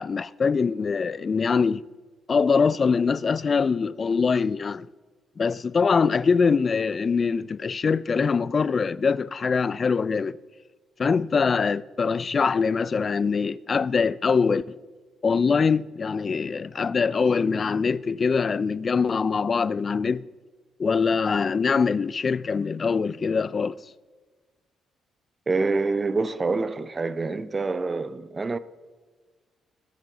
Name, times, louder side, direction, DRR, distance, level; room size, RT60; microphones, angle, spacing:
voice 1, 0.0-1.8 2.3-4.9 5.4-10.4 11.0-14.8 15.2-20.3 20.8-23.8, left 5 dB, 40° left, 0.3 m, -23 dB
voice 2, 25.5-28.6, right 3 dB, 30° right, 0.5 m, -26 dB
19.5 x 7.1 x 3.9 m
cardioid pair, 90°, 0 cm